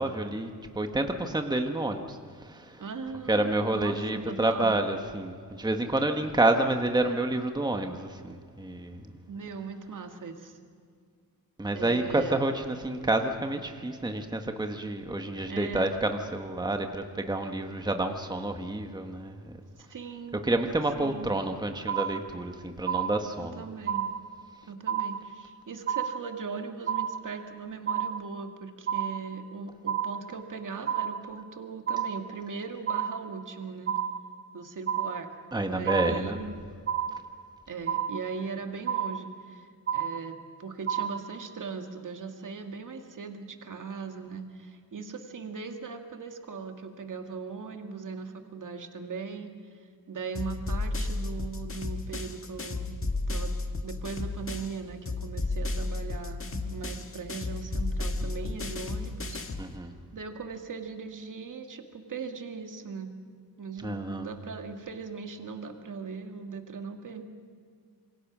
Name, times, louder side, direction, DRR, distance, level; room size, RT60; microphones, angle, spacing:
voice 1, 0.0-2.8 3.3-9.1 11.6-19.6 20.4-23.6 35.5-36.4 59.6-59.9 63.8-64.3, right 2 dB, 10° right, 5 dB, 1.5 m, -29 dB
voice 2, 2.8-4.8 9.3-10.6 11.7-12.5 15.5-16.0 19.8-20.5 21.0-21.3 23.4-24.1 24.6-33.9 34.5-35.3 35.6-36.5 37.7-49.5 49.8-53.0 53.3-53.5 53.8-59.4 60.1-63.1 63.6-67.2, right 5 dB, 55° right, 5 dB, 2.1 m, -39 dB
sound 1, 21.9-22.5 22.9-23.5 23.9-24.5 24.9-25.5 25.9-26.5 26.9-27.5 27.9-28.5 28.9-29.5 29.9-30.5 30.9-31.5 31.9-32.5 32.9-33.5 33.9-34.5 34.9-35.5 35.9-36.5 36.9-37.5 37.9-38.5 38.9-39.5 39.9-40.5 40.9-41.5, right 9 dB, 30° right, 1.1 m, -31 dB
sound 2, 50.4-54.8 55.1-59.7, left 2 dB, 35° left, 1.6 m, -33 dB
26.5 x 22.5 x 6.2 m, 2.1 s
wide cardioid pair, 115°, 38 cm